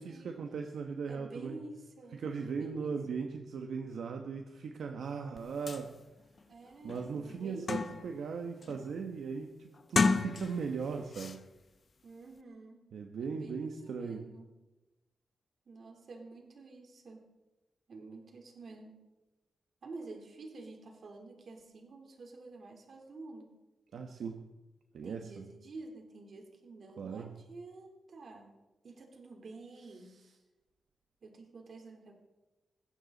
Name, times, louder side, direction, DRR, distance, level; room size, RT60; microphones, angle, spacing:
voice 1, 0.0-1.6 2.1-5.9 6.8-11.5 12.9-14.3 23.9-24.4 24.9-25.5 27.0-27.3 30.1-30.3, right 5 dB, 80° right, 4 dB, 1.2 m, -38 dB
voice 2, 1.1-3.0 6.5-8.1 12.0-12.8 13.2-14.5 15.7-17.3 17.9-19.0 19.8-23.5 25.0-30.2 31.2-32.1, right 3 dB, 55° right, 2 dB, 3.6 m, -49 dB
sound 1, 5.4-5.5 5.7-5.8 6.4-6.5 6.9-8.2 8.6-9.0 9.8-10.8 11.1-11.4, left 4 dB, 40° left, 1.0 m, -32 dB
20.5 x 16.0 x 4.1 m, 1.1 s
wide cardioid pair, 135°, 0 cm